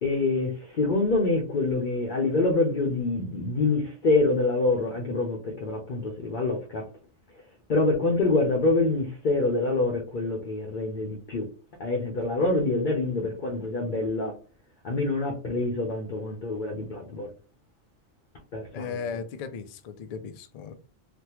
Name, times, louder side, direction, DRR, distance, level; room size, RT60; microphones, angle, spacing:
voice 1, 0.0-6.8 7.7-11.5 11.8-14.3 14.8-17.3 18.5-19.0, left 2 dB, 50° left, 0.7 m, -26 dB
voice 2, 18.7-20.7, left 5 dB, 70° left, 0.3 m, -36 dB
3.4 x 2.2 x 2.9 m
omnidirectional pair, 1.2 m